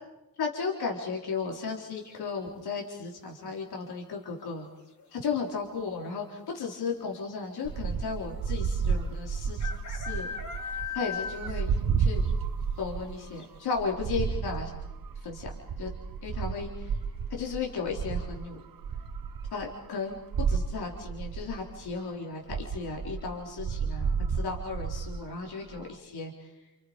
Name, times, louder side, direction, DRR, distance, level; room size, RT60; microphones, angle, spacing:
voice 1, 0.4-4.7 5.2-10.3 10.9-11.7 12.0-12.3 12.8-14.7 15.2-15.5 15.8-15.9 16.2-16.7 17.3-18.6 19.5-20.2 20.5-26.3, left 5 dB, 80° left, -1 dB, 4.1 m, -35 dB
sound 1, 2.0-2.5 4.3-4.7 5.0-5.1 5.3-5.8 6.6-6.7 6.9-7.0 8.6-8.7 9.6-11.9 12.2-12.3 12.8-12.9 13.4-13.5, left 6 dB, 50° left, 4.1 m, -38 dB
sound 2, 7.6-13.2 13.6-18.4 18.8-19.9 20.1-21.9 22.5-25.9, right 6 dB, 65° right, 1.3 m, -32 dB
30.0 x 29.0 x 5.2 m, 1.0 s
wide cardioid pair, 135°, 38 cm